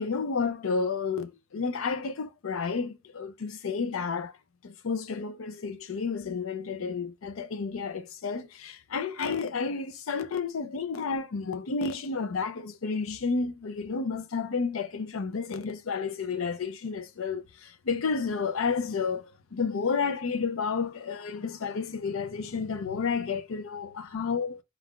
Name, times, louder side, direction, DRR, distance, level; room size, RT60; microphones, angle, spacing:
voice 1, 0.0-4.4 4.6-24.6, left 5 dB, 80° left, 0.5 m, -31 dB
4.5 x 2.4 x 3.6 m
head